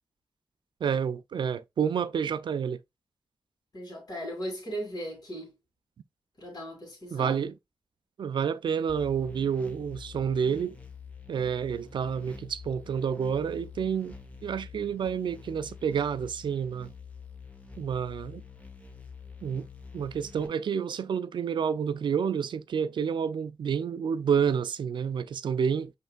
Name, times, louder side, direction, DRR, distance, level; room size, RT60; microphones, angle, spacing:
voice 1, 0.8-2.8 7.1-7.5 8.2-10.8 11.3-14.1 14.4-16.9 17.8-18.4 19.4-19.7 19.9-25.9, right 7 dB, 70° right, 0.4 m, -29 dB
voice 2, 3.7-5.5 6.4-7.4, equal, 50° left, 2.4 m, -37 dB
sound 1, 8.9-20.5, left 5 dB, 15° left, 1.1 m, -47 dB
5.5 x 3.3 x 2.2 m
cardioid pair, 50°, 8 cm